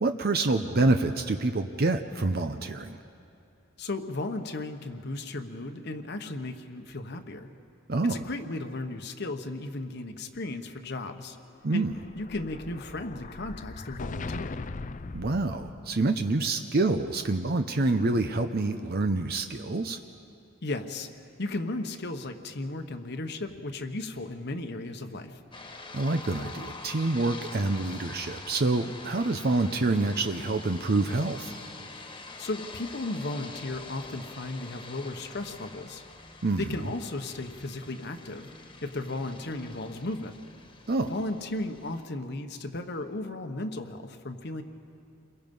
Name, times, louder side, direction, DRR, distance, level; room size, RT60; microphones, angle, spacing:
voice 1, 0.0-3.0 7.9-8.2 11.6-11.9 15.1-20.0 25.9-31.5 36.4-36.7 40.9-41.1, right 2 dB, 50° right, 7 dB, 0.7 m, -27 dB
voice 2, 3.8-7.5 8.0-11.4 11.7-11.8 12.1-14.6 20.6-21.1 21.4-25.4 32.4-36.0 36.6-38.5 38.8-40.4 41.1-44.6, left 2 dB, 55° left, 6 dB, 1.1 m, -35 dB
Explosion, 11.6-16.2, left 3 dB, 40° left, 0.5 m, -40 dB
sound 1, 25.5-42.0, left 3 dB, 25° left, 1.6 m, -45 dB
29.0 x 22.5 x 5.4 m, 2.6 s
head